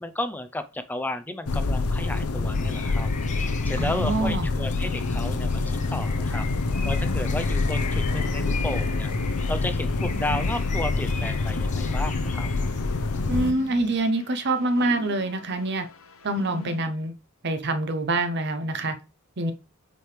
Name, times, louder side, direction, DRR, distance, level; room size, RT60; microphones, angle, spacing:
voice 1, 0.0-3.1 3.6-6.5 6.8-9.1 9.5-12.5, left 1 dB, 10° left, 10 dB, 0.5 m, -33 dB
sound 1, 1.5-13.5, left 3 dB, 90° left, 0.8 m, -26 dB
sound 2, 2.5-14.1, left 5 dB, 35° left, 0.9 m, -40 dB
voice 2, 3.8-4.5 13.3-15.9 16.2-17.1 17.4-19.0 19.4-19.5, right 2 dB, 50° right, 8 dB, 0.8 m, -25 dB
sound 3, 5.7-16.8, left 1 dB, 65° left, 1.1 m, -42 dB
7.7 x 4.8 x 3.3 m, 0.31 s
head